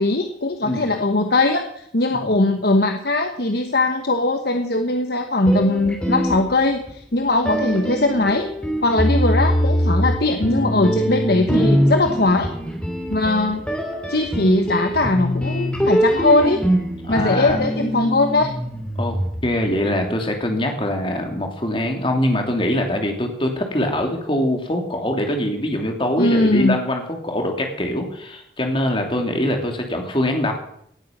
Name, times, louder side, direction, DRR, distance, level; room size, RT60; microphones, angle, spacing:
voice 1, 0.0-8.5 8.8-12.5 13.1-13.6 14.1-16.6 17.1-18.5 26.2-26.8, left 2 dB, 55° left, 5 dB, 1.2 m, -20 dB
sound 1, 5.4-6.9 7.4-19.7, equal, 5° left, 3.2 m, -23 dB
voice 2, 17.0-17.7 19.0-30.5, left 1 dB, 30° left, 3 dB, 2.9 m, -23 dB
18.5 x 9.3 x 7.4 m, 0.72 s
head